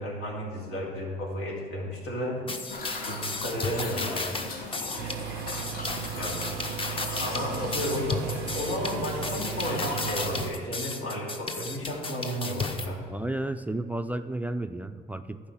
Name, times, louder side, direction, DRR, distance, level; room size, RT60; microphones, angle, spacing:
voice 1, 0.0-2.4 3.1-4.3 6.1-6.4 7.2-13.0, equal, 85° left, -3 dB, 2.8 m, -33 dB
sound 1, 2.5-12.9, left 3 dB, 30° left, 0.9 m, -34 dB
sound 2, 2.7-10.2, left 2 dB, 60° left, 1.7 m, -38 dB
sound 3, 5.0-10.5, right 13 dB, 85° right, 0.4 m, -37 dB
voice 2, 13.1-15.5, right 2 dB, 10° right, 8 dB, 0.3 m, -32 dB
11.0 x 4.9 x 7.4 m, 2.2 s
cardioid pair, 110°, 17 cm